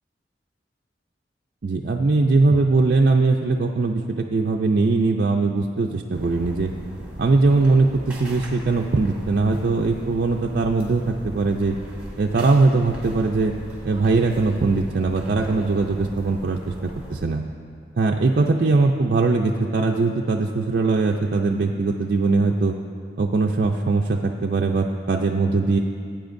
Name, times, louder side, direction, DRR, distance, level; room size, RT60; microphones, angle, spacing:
voice 1, 1.6-6.7 7.2-11.8 12.2-13.5 13.8-17.4 18.0-22.7 23.2-25.8, right 3 dB, 55° right, 1 dB, 0.4 m, -21 dB
sound 1, 6.1-17.3, equal, 10° right, 2.3 m, -39 dB
17.0 x 8.9 x 2.6 m, 2.3 s
head